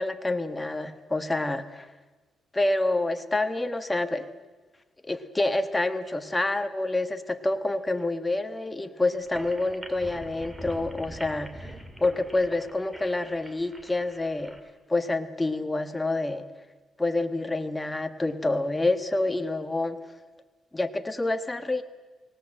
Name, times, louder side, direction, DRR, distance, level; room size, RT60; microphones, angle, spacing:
voice 1, 0.0-1.9 2.5-4.3 5.0-11.7 12.0-14.6 14.9-16.5 17.0-20.0 20.7-21.8, left 2 dB, 15° left, 8 dB, 1.3 m, -27 dB
sound 1, 9.2-14.6, right 1 dB, 10° right, 2.9 m, -43 dB
24.0 x 18.5 x 7.7 m, 1.2 s
cardioid pair, 90°, 0 cm